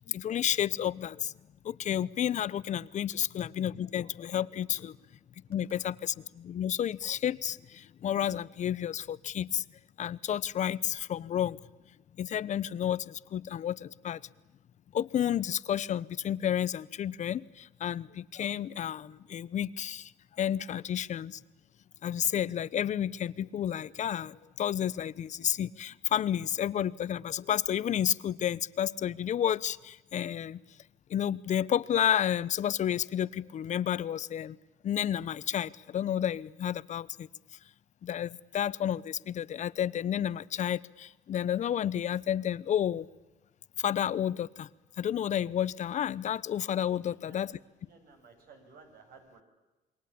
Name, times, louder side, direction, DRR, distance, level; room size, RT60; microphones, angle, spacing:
voice 1, 0.0-1.3 1.6-4.9 5.5-9.6 10.0-11.6 12.2-14.2 14.9-20.1 20.4-21.4 22.0-30.6 31.1-34.6 34.8-37.3 38.0-43.1 43.8-44.7 45.0-47.5, left 10 dB, 45° left, 18 dB, 0.9 m, -31 dB
voice 2, 46.9-49.4, right 4 dB, 60° right, 5 dB, 7.0 m, -56 dB
28.0 x 23.5 x 8.6 m, 1.1 s
cardioid pair, 125°, 17 cm